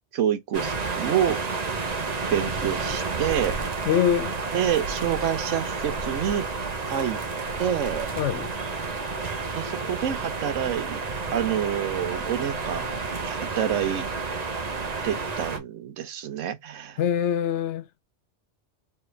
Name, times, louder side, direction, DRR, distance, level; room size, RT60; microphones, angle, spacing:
voice 1, 0.1-1.4 2.3-3.6 4.5-6.5 6.9-7.2 7.6-8.1 9.5-11.0 11.3-12.9 13.2-14.1 15.0-17.0, right 9 dB, 90° right, 1.1 m, -27 dB
sound 1, 0.5-15.6, right 4 dB, 40° right, 0.8 m, -30 dB
voice 2, 3.9-4.4 8.2-8.5 17.0-17.9, left 9 dB, 75° left, 0.9 m, -24 dB
4.4 x 3.3 x 3.3 m
omnidirectional pair, 1.2 m